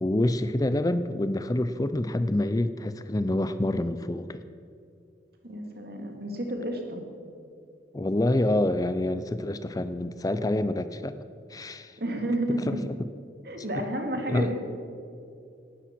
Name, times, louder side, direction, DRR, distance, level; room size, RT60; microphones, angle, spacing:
voice 1, 0.0-4.4 7.9-11.2 11.5-12.0 12.7-12.8 13.8-13.9 14.3-14.5, left 1 dB, 20° left, 12 dB, 0.5 m, -27 dB
voice 2, 5.4-7.0 12.0-12.8 13.4-14.5, right 1 dB, 60° right, 3 dB, 2.6 m, -31 dB
18.5 x 12.0 x 6.2 m, 2.5 s
head